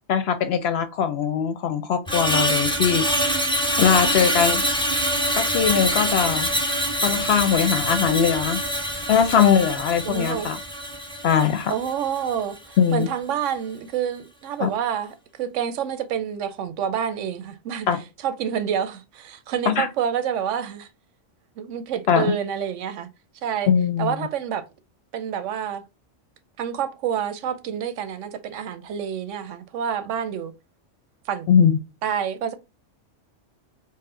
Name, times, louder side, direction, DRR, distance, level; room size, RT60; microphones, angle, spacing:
voice 1, 0.1-3.1 3.8-4.6 5.3-6.5 7.0-8.6 9.1-10.6 11.2-11.7 12.8-13.1 14.6-14.7 17.9-18.0 19.7-19.9 22.1-22.3 23.7-24.3 31.5-31.8, left 7 dB, 65° left, 0.7 m, -20 dB
Screech, 2.1-12.4 12.7-13.0, equal, 5° left, 0.6 m, -25 dB
voice 2, 10.1-10.5 11.7-17.9 18.2-20.9 21.6-23.1 23.4-23.7 24.0-24.7 25.1-25.8 26.6-30.5 31.3-31.5 32.0-32.5, right 8 dB, 85° right, 0.9 m, -28 dB
4.2 x 2.1 x 3.7 m
omnidirectional pair, 1.2 m